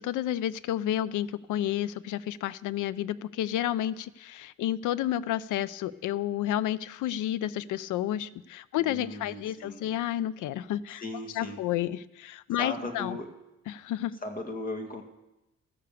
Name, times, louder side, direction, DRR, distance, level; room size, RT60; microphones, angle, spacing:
voice 1, 0.0-11.0 11.3-13.2 13.7-14.1, left 12 dB, 80° left, 18 dB, 0.6 m, -31 dB
voice 2, 8.8-9.9 11.0-11.6 12.6-13.3 14.2-15.0, left 2 dB, 30° left, 4 dB, 2.2 m, -37 dB
14.5 x 6.8 x 6.9 m, 0.97 s
cardioid pair, 90°, 30 cm